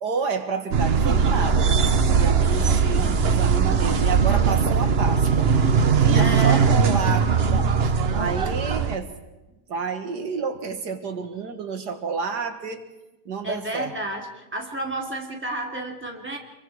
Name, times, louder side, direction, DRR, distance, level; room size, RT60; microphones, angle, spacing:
voice 1, 0.0-5.5 6.0-9.1 9.7-12.8 13.3-13.9, right 5 dB, 80° right, 7 dB, 2.2 m, -30 dB
sound 1, 0.7-9.0, right 6 dB, 45° right, 0.9 m, -20 dB
voice 2, 6.1-6.7 13.4-16.4, right 1 dB, 5° right, 0 dB, 2.8 m, -30 dB
27.0 x 23.0 x 4.8 m, 1.0 s
omnidirectional pair, 1.8 m